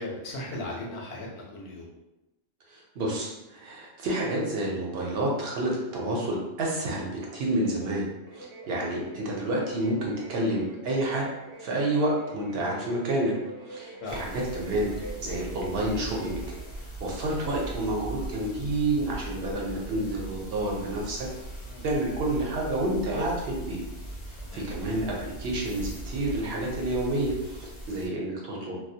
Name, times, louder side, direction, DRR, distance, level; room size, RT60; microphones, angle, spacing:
voice 1, 0.0-1.9 8.9-9.0 14.0-14.3 21.7-21.8 24.4-24.6, left 2 dB, 70° left, -2 dB, 0.8 m, -37 dB
voice 2, 2.7-8.1 8.3-11.3 11.6-13.3 13.6-16.4 16.8-21.3 21.8-23.8 24.5-28.8, right 1 dB, 70° right, -2 dB, 0.8 m, -29 dB
sound 1, 8.2-16.8, right 2 dB, 50° right, 0.4 m, -46 dB
sound 2, 14.1-28.1, right 1 dB, 40° left, 0.4 m, -40 dB
2.2 x 2.0 x 2.6 m, 0.96 s
omnidirectional pair, 1.1 m